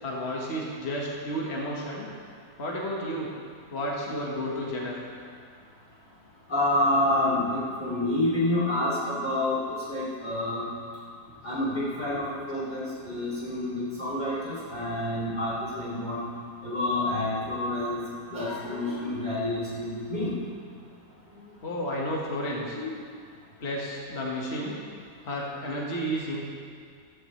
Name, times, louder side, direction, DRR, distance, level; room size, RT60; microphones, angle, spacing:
voice 1, 0.0-2.1 2.6-3.3 3.7-5.0 21.6-22.8 23.6-24.8 25.2-26.4, equal, 40° left, -3 dB, 1.8 m, -32 dB
voice 2, 6.5-9.6 9.9-10.6 11.4-16.2 16.6-18.0 18.3-20.4 21.3-21.4 22.7-23.0, left 1 dB, 25° left, -8 dB, 3.2 m, -28 dB
15.0 x 14.5 x 3.3 m, 2.2 s
omnidirectional pair, 1.7 m